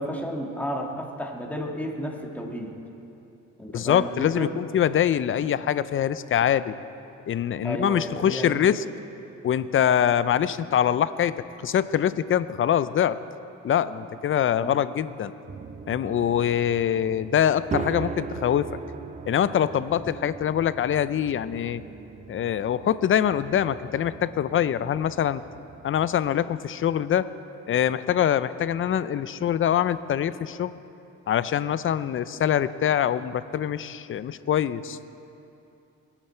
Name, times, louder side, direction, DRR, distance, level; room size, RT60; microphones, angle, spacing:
voice 1, 0.0-2.8 3.6-4.6 7.6-8.6 14.6-14.7, equal, 5° left, 0 dB, 1.8 m, -32 dB
voice 2, 3.7-6.7 7.3-8.8 9.4-11.3 11.6-13.2 13.6-15.3 15.9-18.7 19.3-21.8 22.3-25.4 25.8-27.3 27.7-30.8 31.3-35.0, left 9 dB, 45° left, 15 dB, 0.5 m, -24 dB
sound 1, 15.5-26.4, right 5 dB, 25° right, 0.5 m, -39 dB
21.5 x 9.1 x 4.4 m, 2.8 s
cardioid pair, 90°, 30 cm